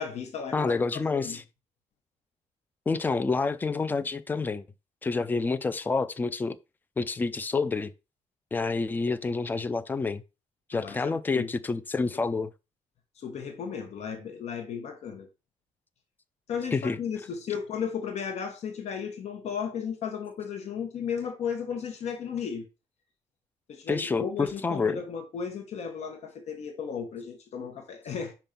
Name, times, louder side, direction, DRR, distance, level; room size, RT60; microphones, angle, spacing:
voice 1, 0.0-0.7 1.1-1.4 10.7-11.5 13.2-15.3 16.5-22.6 23.7-28.3, left 7 dB, 60° left, 1.5 m, -35 dB
voice 2, 0.5-1.4 2.9-4.6 5.0-6.6 7.0-7.9 8.5-10.2 10.7-12.5 16.7-17.0 23.9-25.0, left 4 dB, 15° left, 0.4 m, -28 dB
5.3 x 4.4 x 5.9 m
cardioid pair, 160°, 13 cm